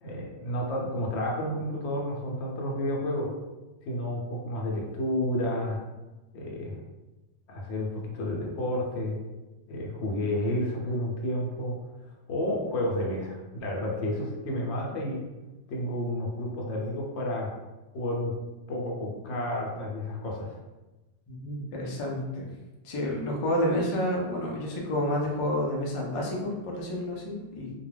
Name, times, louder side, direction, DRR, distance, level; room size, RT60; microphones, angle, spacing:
voice 1, 0.0-3.3 3.9-5.8 6.3-6.8 7.5-9.2 9.7-11.8 12.3-15.2 15.7-17.5 17.9-18.3 18.7-20.6, left 1 dB, 70° left, -2 dB, 0.9 m, -31 dB
voice 2, 21.3-22.5 22.8-27.7, left 1 dB, 45° left, -2 dB, 0.4 m, -29 dB
2.3 x 2.2 x 3.2 m, 1.1 s
omnidirectional pair, 1.2 m